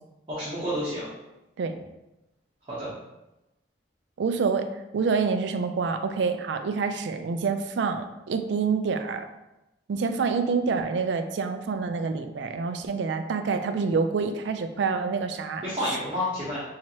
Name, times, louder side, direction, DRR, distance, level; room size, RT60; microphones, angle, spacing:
voice 1, 0.3-1.1 2.6-2.9 15.6-16.6, equal, 30° right, -10 dB, 1.0 m, -30 dB
voice 2, 4.2-4.7 4.9-9.3 9.9-15.6, right 5 dB, 65° right, 8 dB, 0.3 m, -27 dB
4.5 x 2.8 x 2.8 m, 0.97 s
head